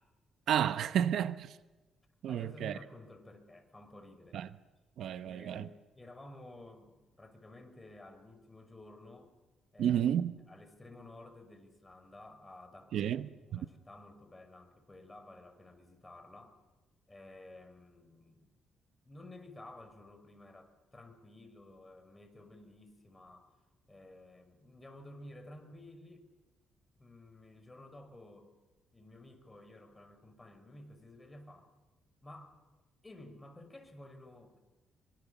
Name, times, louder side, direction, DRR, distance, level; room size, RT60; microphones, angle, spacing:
voice 1, 0.5-1.6 2.2-2.7 4.3-4.5 5.0-5.7 9.8-10.3 12.9-13.6, right 10 dB, 75° right, 0.9 m, -31 dB
voice 2, 2.3-4.4 5.2-9.3 9.7-10.0 10.4-16.6 17.1-18.5 19.1-23.6 23.9-26.3 27.0-28.5 28.9-31.7 32.2-32.6 33.0-34.6, left 1 dB, 15° left, 5.6 m, -53 dB
26.0 x 25.0 x 7.2 m
cardioid pair, 90°, 0 cm